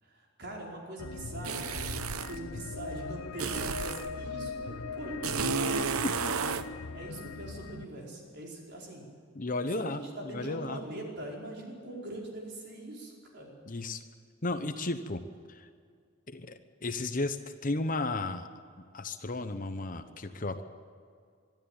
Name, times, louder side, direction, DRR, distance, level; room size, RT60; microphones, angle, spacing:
voice 1, 0.0-1.8 2.1-6.1 6.9-9.1 9.7-13.5, right 1 dB, 50° right, -2 dB, 5.0 m, -42 dB
sound 1, 1.0-7.8, left 4 dB, 85° left, 0.8 m, -40 dB
sound 2, 1.4-2.4 3.4-4.1 5.2-6.7, right 5 dB, 90° right, 0.9 m, -32 dB
voice 2, 6.0-6.3 9.3-10.8 13.7-14.0 14.4-15.2 15.5-15.7 16.3-17.4 17.6-18.5 18.8-20.6, left 2 dB, 40° left, 9 dB, 1.0 m, -34 dB
23.0 x 13.0 x 8.9 m, 2.2 s
head